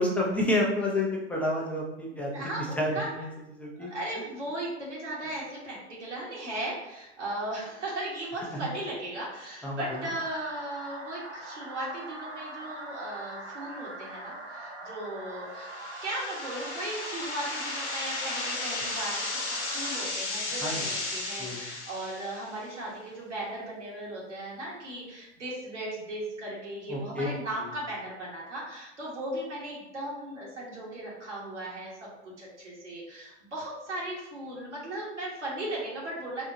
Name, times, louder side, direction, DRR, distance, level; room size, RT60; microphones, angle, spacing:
voice 1, 0.0-3.3 3.6-3.9 8.5-8.7 9.6-9.8 20.6-20.8 21.4-21.6 26.9-27.3, left 1 dB, 5° left, -3 dB, 0.6 m, -29 dB
voice 2, 2.1-3.1 3.8-15.7 16.0-19.2 19.5-36.5, right 1 dB, 80° right, -5 dB, 1.3 m, -37 dB
sound 1, 9.8-20.1, right 2 dB, 65° right, 0.9 m, -42 dB
sound 2, 15.6-22.6, left 2 dB, 75° left, 1.0 m, -34 dB
4.2 x 2.2 x 2.7 m, 0.96 s
figure-of-eight pair, 95°, 35 cm